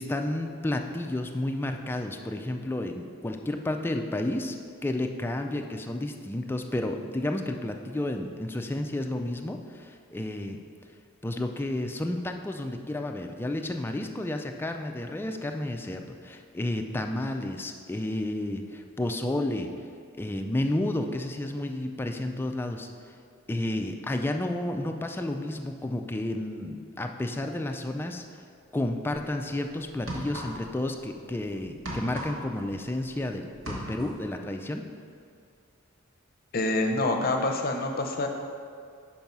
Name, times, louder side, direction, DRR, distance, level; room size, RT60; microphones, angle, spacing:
voice 1, 0.0-4.6 4.8-10.6 11.2-19.7 20.2-23.2 23.5-28.2 28.7-34.8, left 1 dB, 10° left, 4 dB, 0.3 m, -31 dB
sound 1, 29.2-29.3 29.9-30.8 31.1-33.2 33.5-34.3, equal, 65° right, 1.4 m, -37 dB
voice 2, 36.5-38.3, left 2 dB, 45° left, 3 dB, 0.6 m, -26 dB
5.9 x 4.6 x 5.3 m, 2.2 s
head